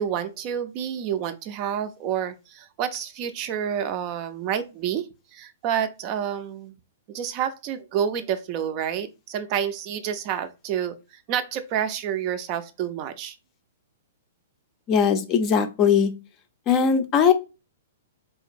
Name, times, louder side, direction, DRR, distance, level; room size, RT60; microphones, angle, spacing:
voice 1, 0.0-6.7 7.1-13.4, right 9 dB, 35° right, 0.4 m, -29 dB
voice 2, 14.9-16.1 16.7-17.3, left 7 dB, 30° left, 0.5 m, -19 dB
3.9 x 2.9 x 2.5 m
hypercardioid pair, 145°, 0 cm